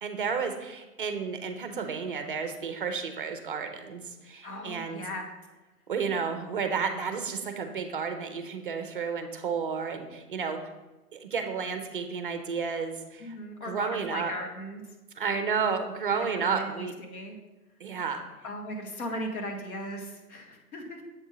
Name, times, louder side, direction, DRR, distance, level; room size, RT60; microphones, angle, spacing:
voice 1, 0.0-5.0 5.9-10.6 11.1-13.4 13.6-14.3 15.2-16.9 17.8-18.2, right 5 dB, 35° right, 7 dB, 0.5 m, -32 dB
voice 2, 4.4-5.3 13.2-14.8 16.1-17.4 18.4-21.0, left 1 dB, 65° left, 2 dB, 1.4 m, -38 dB
7.2 x 2.7 x 5.0 m, 1.1 s
hypercardioid pair, 140°, 47 cm